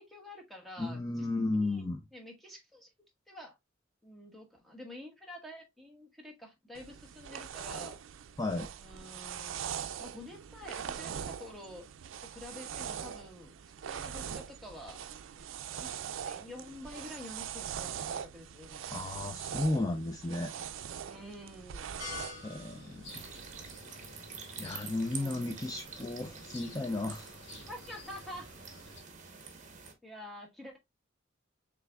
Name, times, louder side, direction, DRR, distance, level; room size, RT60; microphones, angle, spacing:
voice 1, 0.0-1.3 1.5-1.8 2.1-2.9 3.3-3.6 4.0-8.0 8.8-11.9 12.2-13.5 13.8-15.0 15.7-15.9 16.2-19.0 21.1-22.0 25.1-25.5 27.7-28.5 30.0-30.8, left 1 dB, ahead, 1.1 m, -48 dB
voice 2, 0.8-2.0 8.4-8.7 18.9-20.5 22.4-23.3 24.6-27.4, left 2 dB, 20° left, 0.4 m, -34 dB
sound 1, 6.7-23.8, right 8 dB, 75° right, 0.4 m, -42 dB
sound 2, 22.0-29.0, left 4 dB, 75° left, 1.7 m, -50 dB
sound 3, 23.1-29.9, right 6 dB, 40° right, 0.9 m, -47 dB
5.6 x 3.4 x 2.2 m
head